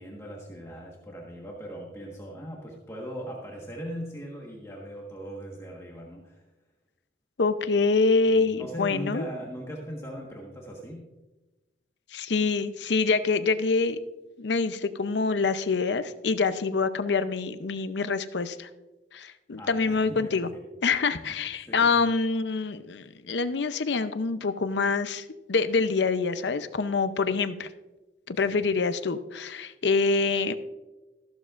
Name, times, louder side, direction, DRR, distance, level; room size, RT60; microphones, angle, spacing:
voice 1, 0.0-6.4 8.3-11.1 19.6-20.6 21.1-21.3 21.6-22.0 28.4-28.6, equal, 15° left, -2 dB, 1.4 m, -39 dB
voice 2, 7.4-9.3 12.1-14.0 14.4-18.7 19.1-20.5 20.8-27.7 28.3-30.6, left 4 dB, 80° left, 11 dB, 0.6 m, -26 dB
14.0 x 12.0 x 2.5 m, 1.1 s
head